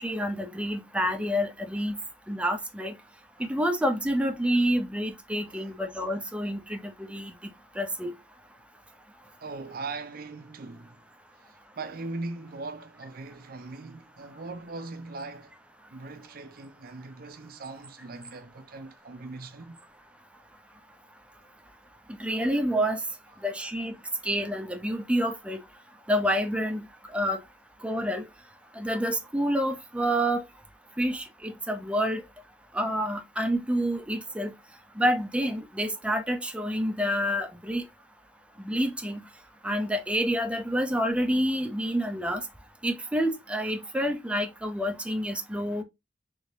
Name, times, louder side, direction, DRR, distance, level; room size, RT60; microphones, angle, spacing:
voice 1, 0.0-2.0 2.3-2.9 3.4-7.3 7.8-8.1 22.2-23.0 23.4-23.9 24.2-25.6 26.1-26.9 27.1-27.4 27.8-28.2 28.8-30.4 31.0-32.2 32.7-34.5 35.0-37.8 38.6-39.2 39.6-42.4 42.8-45.8, equal, 5° right, 0.5 m, -28 dB
voice 2, 9.4-11.0 11.5-15.5 15.9-19.8, right 3 dB, 55° right, 0.5 m, -40 dB
3.4 x 3.3 x 2.6 m
head